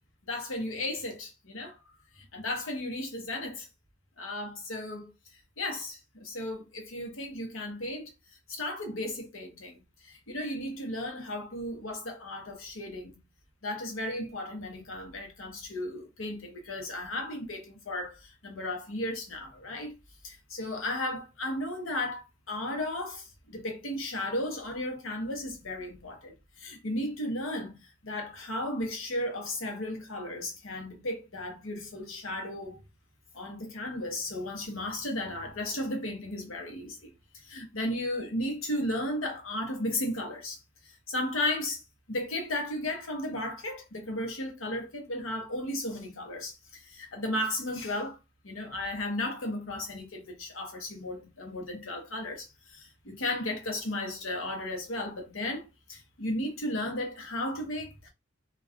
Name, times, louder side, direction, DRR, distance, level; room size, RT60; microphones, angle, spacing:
voice 1, 0.3-1.8 2.2-3.7 4.2-5.1 5.6-8.1 8.5-9.8 10.0-13.2 13.6-19.9 20.2-32.8 33.3-40.6 41.1-41.8 42.1-48.2 48.4-58.1, left 1 dB, 90° left, 0.9 m, -35 dB
2.4 x 2.3 x 3.5 m
head